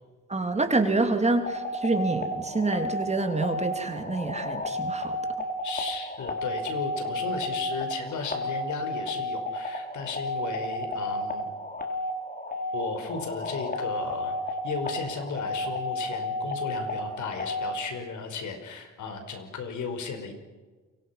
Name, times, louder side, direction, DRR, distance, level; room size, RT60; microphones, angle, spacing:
voice 1, 0.3-5.2, right 3 dB, 20° right, 6 dB, 3.3 m, -27 dB
sound 1, 1.4-17.7, left 2 dB, 30° left, 4.2 m, -32 dB
voice 2, 5.6-11.5 12.7-20.3, left 5 dB, 75° left, 7 dB, 5.2 m, -35 dB
29.0 x 24.0 x 6.0 m, 1.3 s
cardioid pair, 90°, 30 cm